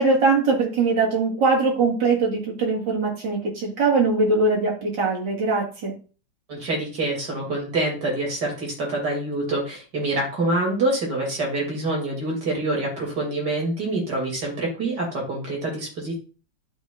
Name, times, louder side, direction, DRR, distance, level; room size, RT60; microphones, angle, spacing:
voice 1, 0.0-5.9, right 3 dB, 90° right, -2 dB, 2.7 m, -21 dB
voice 2, 6.5-16.1, right 2 dB, 75° right, -2 dB, 3.4 m, -26 dB
12.0 x 4.7 x 2.5 m, 0.38 s
omnidirectional pair, 1.9 m